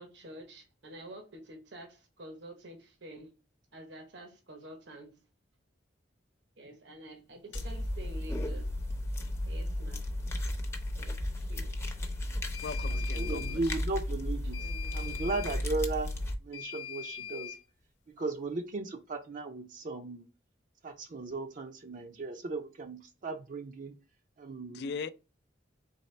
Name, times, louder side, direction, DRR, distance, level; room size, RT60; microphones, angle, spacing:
voice 1, 0.0-3.3 3.7-5.2 6.6-8.7 9.4-10.0 10.9-11.7 14.6-15.0, right 1 dB, 75° right, 1.0 m, -48 dB
sound 1, 7.5-7.7 12.5-13.6 14.5-15.6 16.5-17.6, left 9 dB, 80° left, 0.8 m, -42 dB
sound 2, 7.5-16.4, left 1 dB, 15° left, 0.6 m, -34 dB
voice 2, 12.6-13.6 24.7-25.1, left 5 dB, 60° left, 0.3 m, -39 dB
voice 3, 13.1-14.6 15.0-16.1 16.4-17.5 18.1-20.2 20.8-23.9 24.4-24.8, right 3 dB, 45° right, 0.5 m, -36 dB
4.1 x 3.3 x 3.2 m
head